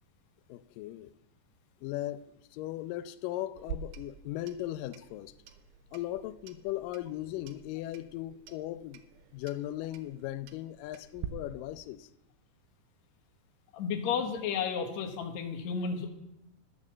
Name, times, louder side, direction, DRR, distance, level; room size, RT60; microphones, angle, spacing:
voice 1, 0.5-1.1 1.8-5.3 5.9-9.0 9.3-12.1, left 14 dB, 85° left, 2.2 m, -38 dB
Clock, 3.6-11.3, right 8 dB, 80° right, 2.3 m, -47 dB
voice 2, 13.7-16.1, left 6 dB, 65° left, 2.3 m, -32 dB
12.0 x 6.5 x 7.3 m
omnidirectional pair, 3.8 m